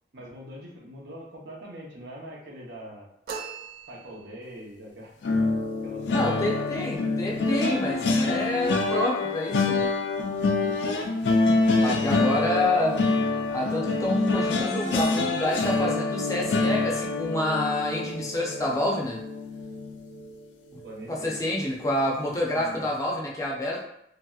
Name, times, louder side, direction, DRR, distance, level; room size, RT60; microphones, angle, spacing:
voice 1, 0.1-3.1 3.9-5.1 5.8-6.7 10.6-10.8 11.7-12.4 20.8-21.4 22.5-22.9, right 1 dB, 70° right, -2 dB, 0.7 m, -42 dB
sound 1, 3.3-4.5, right 6 dB, 55° right, 0.3 m, -39 dB
sound 2, 5.2-20.4 20.8-21.0 21.3-21.5, left 3 dB, 85° left, 0.4 m, -26 dB
voice 2, 6.1-9.9 11.8-13.0 13.5-19.2 20.7-20.8 21.1-23.8, left 1 dB, 20° left, -2 dB, 0.4 m, -28 dB
2.9 x 2.7 x 2.3 m, 0.78 s
head